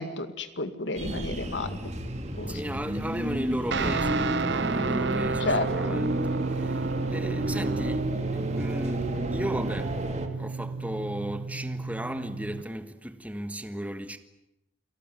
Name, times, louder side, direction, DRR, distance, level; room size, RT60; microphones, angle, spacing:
voice 1, 0.0-1.8 2.4-2.6 5.4-6.1, left 2 dB, 80° left, 2.2 m, -31 dB
sound 1, 1.0-10.3, right 1 dB, 35° right, 2.6 m, -32 dB
voice 2, 2.5-6.2 6.5-6.8 7.1-8.1 8.3-9.0 9.3-10.0 10.4-14.2, equal, 10° right, 1.5 m, -35 dB
Guitar, 3.7-12.6, right 4 dB, 70° right, 0.9 m, -31 dB
29.5 x 18.5 x 9.6 m
head